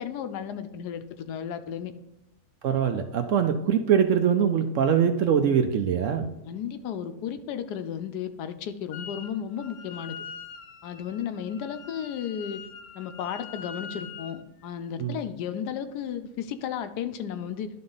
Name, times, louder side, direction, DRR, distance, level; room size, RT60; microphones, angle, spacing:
voice 1, 0.0-1.9 6.4-10.2 10.8-12.6 12.9-17.7, left 8 dB, 90° left, 10 dB, 1.2 m, -34 dB
voice 2, 2.6-6.3 15.0-15.2, right 8 dB, 65° right, 6 dB, 0.8 m, -23 dB
Wind instrument woodwind instrument, 8.9-9.3 9.6-14.4, left 6 dB, 70° left, 1.0 m, -43 dB
11.0 x 3.7 x 3.9 m, 0.93 s
omnidirectional pair, 1.7 m